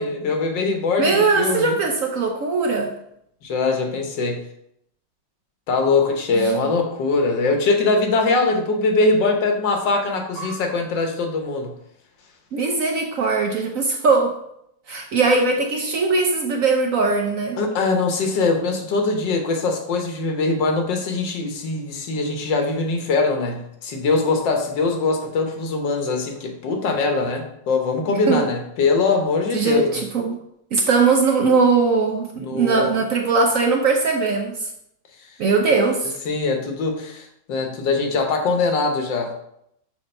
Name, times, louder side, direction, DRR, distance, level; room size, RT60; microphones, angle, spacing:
voice 1, 0.0-1.8 3.4-4.4 5.7-11.7 17.6-30.0 32.4-33.0 36.3-39.3, left 3 dB, 80° left, 4 dB, 1.7 m, -22 dB
voice 2, 1.0-2.9 6.3-6.7 10.4-10.6 12.5-14.3 14.9-17.6 28.3-28.4 29.5-30.4 30.7-34.7 35.4-36.2, right 4 dB, 65° right, 2 dB, 0.9 m, -20 dB
6.5 x 2.9 x 5.4 m, 0.75 s
omnidirectional pair, 1.9 m